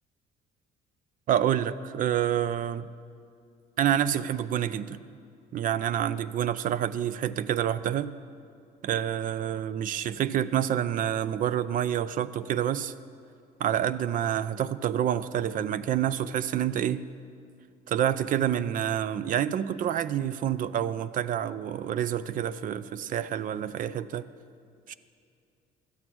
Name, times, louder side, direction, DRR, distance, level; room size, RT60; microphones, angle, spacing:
voice 1, 1.3-2.9 3.8-5.0 5.5-8.1 8.8-12.9 13.6-17.0 17.9-24.3 24.9-25.0, right 10 dB, 55° right, 15 dB, 0.4 m, -28 dB
13.0 x 8.4 x 6.1 m, 2.4 s
cardioid pair, 110°, 17 cm